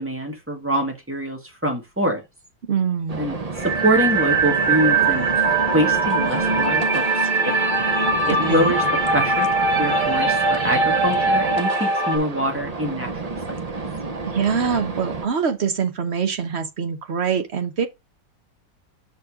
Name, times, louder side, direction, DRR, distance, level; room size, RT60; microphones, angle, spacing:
voice 1, 0.0-2.2 3.2-5.3 5.7-7.6 8.2-9.5 9.8-13.6, right 1 dB, 5° right, 2.0 m, -25 dB
voice 2, 2.7-3.3 8.5-8.7 14.2-17.9, right 6 dB, 45° right, 1.0 m, -24 dB
sound 1, 3.1-15.3, right 3 dB, 85° right, 0.3 m, -31 dB
sound 2, 3.6-12.2, right 3 dB, 25° right, 2.1 m, -21 dB
6.2 x 4.5 x 4.9 m
omnidirectional pair, 2.0 m